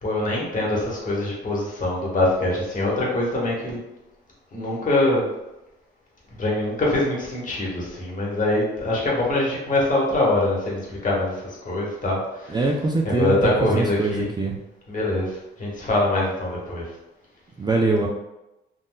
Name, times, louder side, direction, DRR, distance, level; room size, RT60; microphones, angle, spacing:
voice 1, 0.0-3.8 4.5-5.3 6.4-12.6 13.0-14.3 14.9-16.8, left 2 dB, 40° left, -4 dB, 1.2 m, -24 dB
voice 2, 12.5-14.6 17.6-18.1, right 3 dB, 20° right, 0 dB, 0.4 m, -23 dB
3.7 x 2.5 x 2.2 m, 0.95 s
cardioid pair, 90°, 20 cm